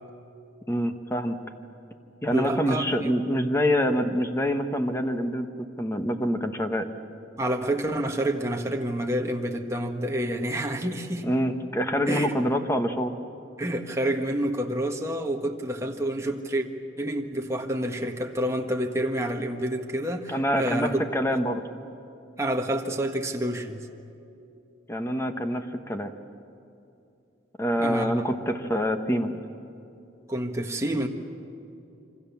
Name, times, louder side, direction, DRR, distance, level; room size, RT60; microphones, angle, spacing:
voice 1, 0.7-1.4 2.2-5.5 5.8-6.9 11.2-13.1 20.3-21.6 24.9-26.1 27.6-29.4, equal, 15° left, 6 dB, 1.3 m, -26 dB
voice 2, 2.3-3.1 7.4-11.3 12.1-12.4 13.6-16.7 17.0-21.0 21.3-21.4 22.4-23.8 27.8-28.1 30.3-31.1, right 1 dB, 15° right, 2 dB, 1.5 m, -28 dB
27.0 x 25.0 x 7.2 m, 2.8 s
head